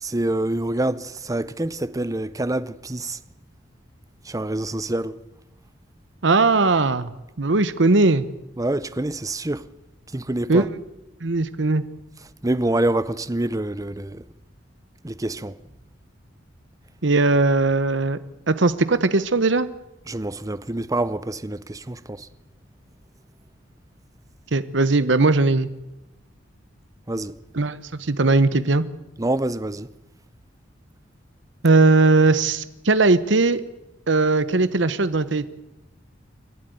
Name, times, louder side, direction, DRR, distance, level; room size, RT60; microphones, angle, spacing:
voice 1, 0.0-3.2 4.2-5.2 8.6-9.7 10.1-10.7 12.4-14.2 15.0-15.6 20.1-22.3 27.1-27.4 29.2-29.9, right 1 dB, 20° right, 0.7 m, -26 dB
voice 2, 6.2-7.1 7.4-8.3 10.5-10.7 11.2-11.8 17.0-18.2 18.5-19.7 24.5-25.7 27.5-28.8 31.6-33.6 34.1-35.5, right 3 dB, 70° right, 1.0 m, -19 dB
28.0 x 11.5 x 9.4 m
head